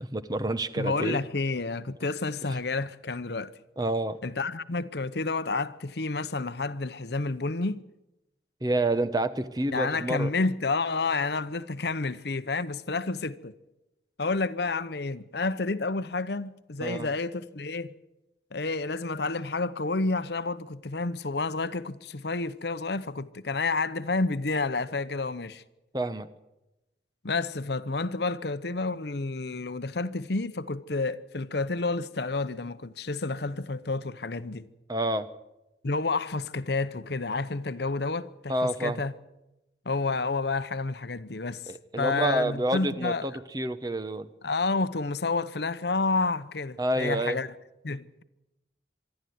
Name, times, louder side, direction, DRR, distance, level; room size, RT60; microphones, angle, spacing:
voice 1, 0.0-1.2 3.8-4.2 8.6-10.3 16.8-17.1 25.9-26.3 34.9-35.3 38.5-39.0 41.7-44.3 46.8-47.4, right 1 dB, 20° right, 0.9 m, -28 dB
voice 2, 0.8-3.5 4.2-7.8 9.7-13.5 14.2-17.9 18.5-25.6 27.2-34.7 35.8-39.1 39.8-43.3 44.4-47.5 47.8-48.2, left 3 dB, 60° left, 0.8 m, -30 dB
25.0 x 12.0 x 9.4 m
head